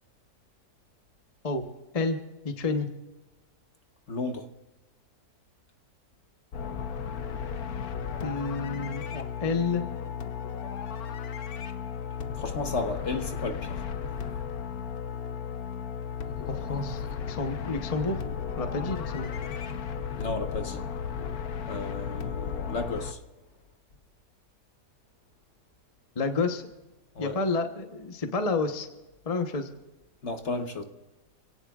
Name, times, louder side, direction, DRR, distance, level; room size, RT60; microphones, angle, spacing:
voice 1, 2.4-2.9 8.2-9.8 16.5-18.2 18.6-19.3 26.1-26.7 27.2-28.9 29.2-29.7, left 3 dB, 25° left, 0.9 m, -29 dB
voice 2, 4.1-4.5 12.3-13.8 20.2-20.8 21.7-23.2 27.1-27.4 30.2-30.8, left 3 dB, 50° left, 1.3 m, -33 dB
sound 1, 6.5-23.1, left 7 dB, 65° left, 1.3 m, -35 dB
28.0 x 17.5 x 2.4 m
omnidirectional pair, 1.7 m